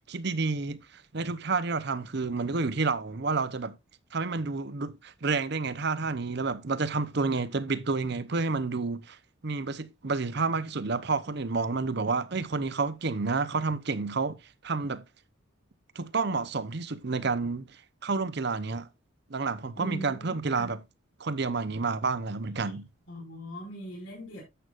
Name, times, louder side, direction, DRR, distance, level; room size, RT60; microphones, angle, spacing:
voice 1, 0.0-3.7 4.1-9.2 9.4-14.4 14.6-15.0 15.9-17.6 18.0-18.9 19.3-20.8 21.2-22.8, right 4 dB, 55° right, 0.8 m, -30 dB
voice 2, 19.8-20.7 22.6-22.7 23.1-24.4, right 1 dB, 60° left, 5.2 m, -41 dB
11.0 x 7.9 x 2.5 m
head